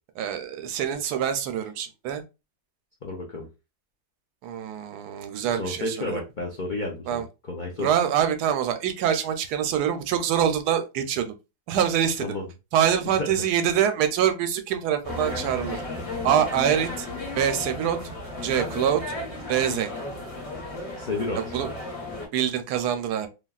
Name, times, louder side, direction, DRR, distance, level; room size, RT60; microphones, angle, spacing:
voice 1, 0.2-2.2 4.4-6.2 7.1-7.2 7.8-11.3 11.7-12.3 12.7-15.8 16.2-17.1 17.3-18.0 18.4-19.0 19.5-19.9 21.4-21.7 22.3-23.3, right 9 dB, 90° right, 1.1 m, -25 dB
voice 2, 3.0-3.5 5.5-7.9 12.2-12.4 13.1-13.3 20.9-21.5, left 2 dB, 65° left, 0.4 m, -31 dB
sound 1, 15.0-22.3, left 2 dB, 45° left, 1.6 m, -34 dB
3.3 x 2.2 x 2.3 m
omnidirectional pair, 1.7 m